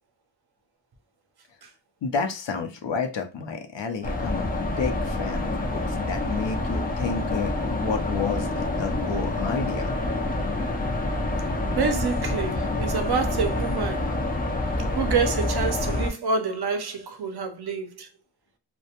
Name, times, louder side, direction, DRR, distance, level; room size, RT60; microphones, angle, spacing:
voice 1, 2.0-9.9, left 5 dB, 65° left, 0.6 m, -31 dB
sound 1, 4.0-16.1, left 2 dB, 20° left, 0.3 m, -27 dB
voice 2, 11.6-14.1 14.9-18.1, right 5 dB, 55° right, 0.5 m, -27 dB
2.2 x 2.1 x 2.8 m
wide cardioid pair, 125°, 48 cm